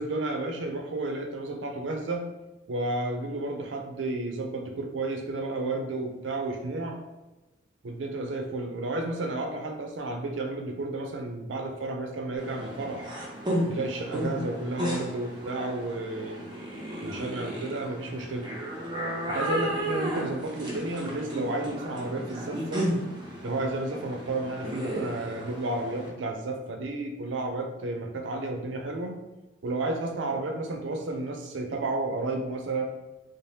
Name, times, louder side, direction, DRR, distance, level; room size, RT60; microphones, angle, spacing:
voice 1, 0.0-2.3 2.7-7.0 7.8-13.1 13.7-16.4 17.0-18.5 19.3-22.8 23.4-29.2 29.6-32.9, right 2 dB, 90° right, 2 dB, 0.5 m, -32 dB
sound 1, 12.4-26.1, equal, 25° right, 0.5 m, -34 dB
3.1 x 2.0 x 2.7 m, 1.1 s
head